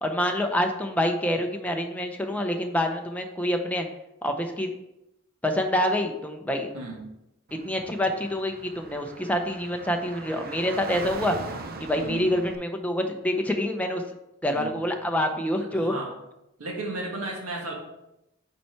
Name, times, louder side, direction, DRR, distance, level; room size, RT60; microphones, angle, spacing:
voice 1, 0.0-3.9 4.2-4.8 5.4-6.7 7.5-11.4 11.8-14.0 14.4-15.9, left 1 dB, 5° left, 3 dB, 0.5 m, -26 dB
voice 2, 6.7-7.0 12.0-12.3 14.4-14.7 15.5-16.1 16.6-17.7, right 2 dB, 90° right, -1 dB, 1.7 m, -34 dB
Car / Traffic noise roadway noise, 7.5-12.6, right 3 dB, 45° right, 0.5 m, -40 dB
5.8 x 4.5 x 4.4 m, 0.88 s
head